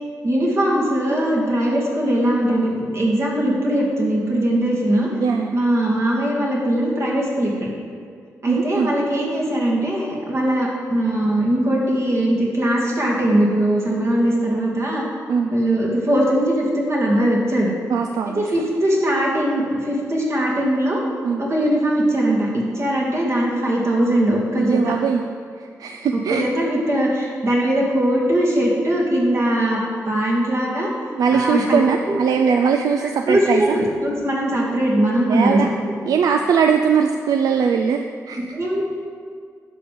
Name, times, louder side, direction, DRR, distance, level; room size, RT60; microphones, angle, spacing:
voice 1, 0.2-5.1 5.5-7.7 8.4-15.0 15.5-17.7 18.4-21.0 21.4-24.9 26.3-29.8 30.1-30.9 31.3-31.8 32.1-32.2 33.3-35.6 38.5-38.8, right 1 dB, 50° right, -3 dB, 2.5 m, -20 dB
voice 2, 5.2-5.5 8.5-8.9 15.3-15.5 17.9-18.4 21.2-21.4 24.6-25.2 25.6-26.4 31.2-33.6 35.3-35.7 36.1-38.4, right 6 dB, 80° right, 5 dB, 0.4 m, -20 dB
12.0 x 5.2 x 5.3 m, 2.1 s
cardioid pair, 95°, 6 cm